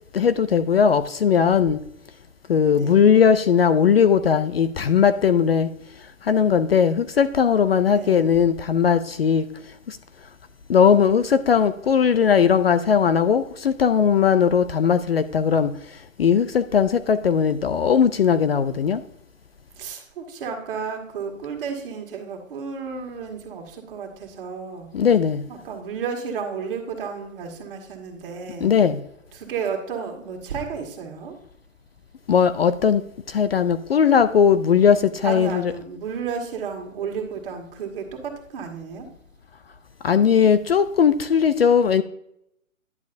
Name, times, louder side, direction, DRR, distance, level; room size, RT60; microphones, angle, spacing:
voice 1, 0.1-1.8 2.5-5.7 6.2-9.4 9.9-10.0 10.7-15.7 16.2-19.0 24.9-25.4 28.6-29.0 32.3-33.0 33.3-35.7 40.0-42.0, left 7 dB, 50° left, 0.4 m, -18 dB
voice 2, 2.7-3.0 7.9-8.2 19.8-24.9 25.5-28.7 29.3-31.4 35.2-39.1, right 6 dB, 40° right, 1.9 m, -32 dB
10.5 x 7.2 x 2.6 m
hypercardioid pair, 145°, 40 cm